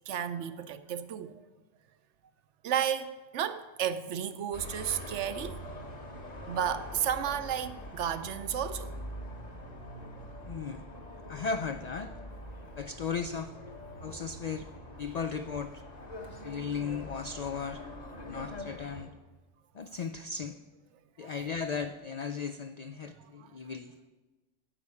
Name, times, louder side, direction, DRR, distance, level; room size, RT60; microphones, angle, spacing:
voice 1, 0.1-1.5 2.6-5.6 6.5-9.0 10.4-10.6 21.2-21.3 23.2-23.5, right 9 dB, 75° right, 0.9 m, -33 dB
sound 1, 4.5-19.0, left 1 dB, 35° left, 1.2 m, -44 dB
voice 2, 10.5-10.8 11.3-12.1 12.8-13.5 14.0-14.7 15.0-15.8 16.4-17.8 18.3-19.1 19.7-20.6 21.2-23.9, left 5 dB, 85° left, 0.3 m, -36 dB
10.0 x 5.4 x 8.3 m
omnidirectional pair, 1.3 m